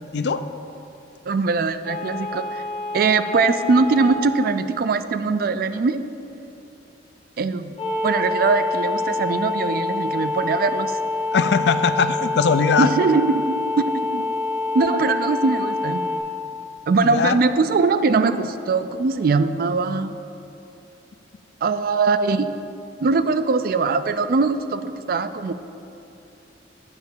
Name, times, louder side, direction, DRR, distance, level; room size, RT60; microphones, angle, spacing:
voice 1, 1.3-2.6 2.9-6.0 7.4-7.7 8.0-10.9 12.8-13.6 14.7-16.0 16.9-20.1 21.6-22.5 23.0-25.5, right 4 dB, 50° right, 11 dB, 0.3 m, -21 dB
sound 1, 1.9-4.2 7.8-16.2, left 3 dB, 35° left, 1.3 m, -26 dB
voice 2, 11.3-12.9 17.0-17.4, left 5 dB, 60° left, 11 dB, 0.4 m, -20 dB
7.9 x 5.2 x 7.2 m, 2.8 s
head